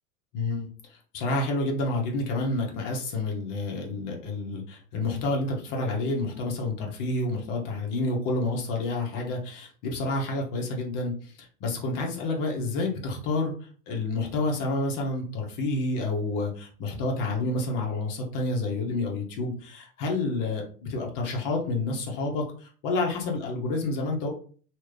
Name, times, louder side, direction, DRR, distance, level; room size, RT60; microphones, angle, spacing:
voice 1, 0.3-24.3, left 2 dB, 50° left, 0 dB, 1.3 m, -29 dB
3.0 x 2.5 x 3.4 m, 0.43 s
hypercardioid pair, 100°, 43 cm